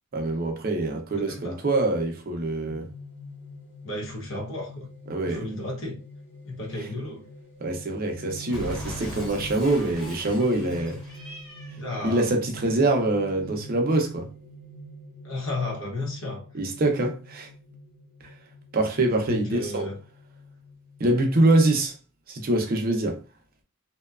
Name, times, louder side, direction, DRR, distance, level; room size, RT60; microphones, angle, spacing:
voice 1, 0.1-2.9 5.1-5.4 7.6-11.0 12.0-14.3 16.5-17.5 18.7-19.9 21.0-21.9 22.3-23.2, right 2 dB, 40° right, 0.5 m, -24 dB
voice 2, 1.3-1.6 3.8-4.9 5.3-6.0 6.4-7.2 11.8-12.3 15.2-16.5 19.2-20.0, left 2 dB, 60° left, 0.8 m, -33 dB
sound 1, 2.7-21.8, equal, 30° left, 1.0 m, -45 dB
Cat, 8.5-11.8, left 1 dB, 5° left, 1.0 m, -40 dB
2.7 x 2.2 x 2.3 m
head